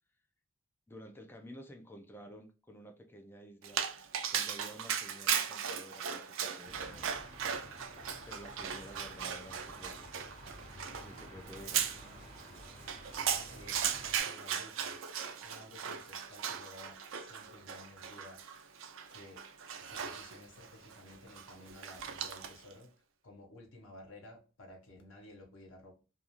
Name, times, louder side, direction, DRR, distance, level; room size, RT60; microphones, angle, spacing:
voice 1, 0.9-3.8 4.3-7.1 8.3-10.1 11.0-11.9, equal, 10° left, 0.4 m, -52 dB
Dog, 3.6-22.7, right 8 dB, 65° right, 0.4 m, -38 dB
sound 1, 6.6-14.2, right 1 dB, 35° right, 1.0 m, -52 dB
voice 2, 13.2-14.0 14.2-15.0 15.4-18.4 19.1-19.5 19.8-22.9 23.2-25.9, left 1 dB, 70° left, 0.8 m, -54 dB
2.4 x 2.4 x 2.8 m
head